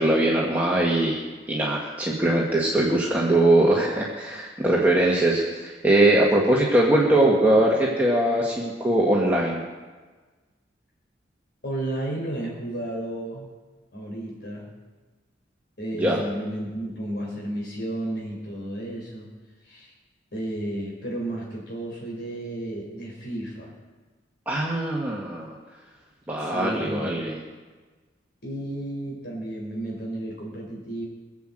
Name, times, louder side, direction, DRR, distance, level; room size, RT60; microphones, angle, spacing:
voice 1, 0.0-9.6 16.0-16.3 24.5-25.6 26.3-27.4, right 1 dB, 10° right, -5 dB, 1.8 m, -21 dB
voice 2, 11.6-13.5 13.9-14.7 15.8-19.3 19.6-19.9 20.3-23.7 26.4-27.2 28.4-31.1, right 1 dB, 60° left, -2 dB, 4.1 m, -32 dB
22.5 x 7.7 x 7.8 m, 1.3 s
head